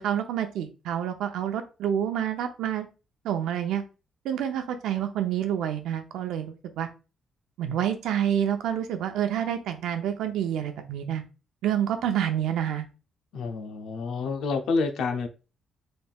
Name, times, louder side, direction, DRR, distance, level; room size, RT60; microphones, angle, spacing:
voice 1, 0.0-2.9 3.2-3.9 4.2-6.9 7.6-11.2 11.6-12.8, right 10 dB, 85° right, 0.6 m, -28 dB
voice 2, 13.3-15.3, left 4 dB, 75° left, 0.6 m, -28 dB
4.1 x 3.5 x 2.3 m
cardioid pair, 90°, 0 cm